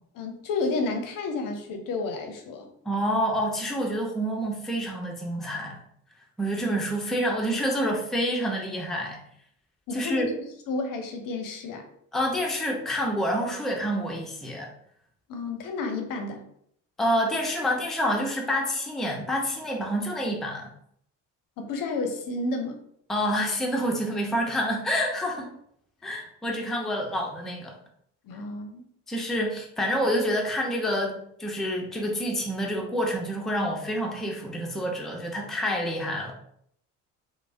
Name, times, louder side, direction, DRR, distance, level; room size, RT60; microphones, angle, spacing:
voice 1, 0.2-2.7 9.9-11.8 15.3-16.5 21.6-22.8 28.3-28.8, left 3 dB, 50° left, 4 dB, 0.6 m, -31 dB
voice 2, 2.9-5.8 6.4-9.2 9.9-10.3 12.1-14.7 17.0-20.7 23.1-25.5 26.0-27.7 29.1-36.3, equal, ahead, 0 dB, 0.5 m, -28 dB
3.2 x 2.1 x 2.5 m, 0.69 s
hypercardioid pair, 60°, 42 cm